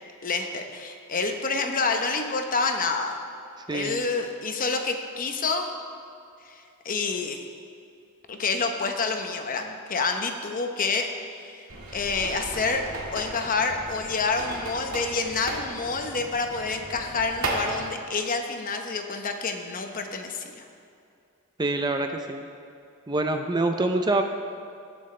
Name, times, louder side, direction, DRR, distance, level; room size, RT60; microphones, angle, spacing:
voice 1, 0.2-3.2 3.7-5.7 6.4-7.4 8.3-11.7 11.9-12.8 13.1-20.6, left 4 dB, 40° left, 5 dB, 0.9 m, -28 dB
voice 2, 3.7-4.0 21.6-22.4 23.1-24.2, right 2 dB, 20° right, 5 dB, 0.5 m, -25 dB
sound 1, 11.7-17.8, right 2 dB, 75° right, 1.9 m, -35 dB
19.0 x 7.8 x 3.3 m, 2.5 s
head